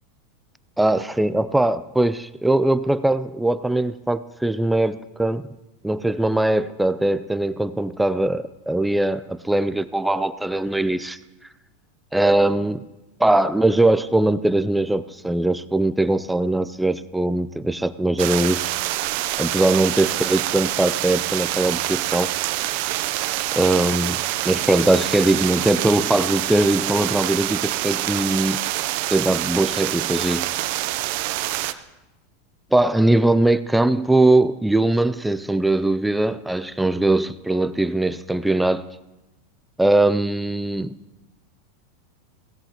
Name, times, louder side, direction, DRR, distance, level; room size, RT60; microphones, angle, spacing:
voice 1, 0.8-5.4 5.8-11.2 12.1-12.8 13.2-18.7 19.4-22.3 23.5-28.6 29.1-30.5 32.7-38.8 39.8-41.0, right 2 dB, 5° right, 0.4 m, -21 dB
sound 1, 18.2-31.7, right 16 dB, 60° right, 0.6 m, -26 dB
21.0 x 16.5 x 3.0 m
supercardioid pair, 130°, 0 cm